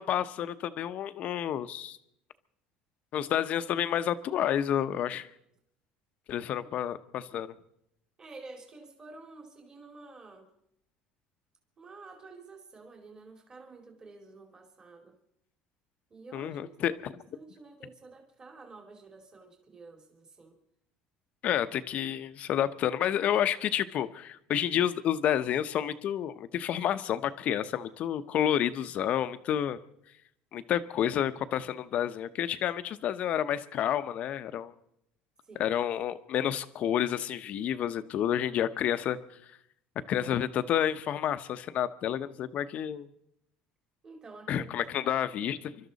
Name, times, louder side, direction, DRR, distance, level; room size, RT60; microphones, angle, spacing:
voice 1, 0.0-2.0 3.1-5.3 6.3-7.5 16.3-16.9 21.4-29.8 30.5-34.7 35.6-39.2 40.1-43.1 44.5-45.8, left 10 dB, 50° left, 12 dB, 0.8 m, -30 dB
voice 2, 8.2-10.5 11.8-15.2 16.1-20.6 35.4-35.8 44.0-45.2, right 3 dB, 25° right, 3 dB, 2.5 m, -50 dB
28.0 x 12.5 x 4.0 m, 0.78 s
cardioid pair, 120°, 3 cm